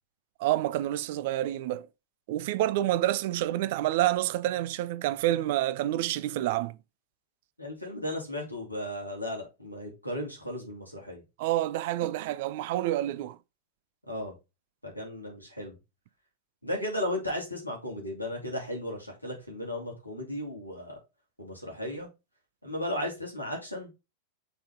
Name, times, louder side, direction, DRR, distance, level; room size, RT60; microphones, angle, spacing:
voice 1, 0.4-1.9 2.3-6.8 11.4-13.4, right 14 dB, 50° right, 0.4 m, -28 dB
voice 2, 7.6-11.2 14.1-14.3 14.8-15.8 16.6-21.0 21.4-22.1 22.6-23.9, left 1 dB, 90° right, 2.6 m, -35 dB
6.8 x 3.9 x 3.9 m
figure-of-eight pair, 90°, 0 cm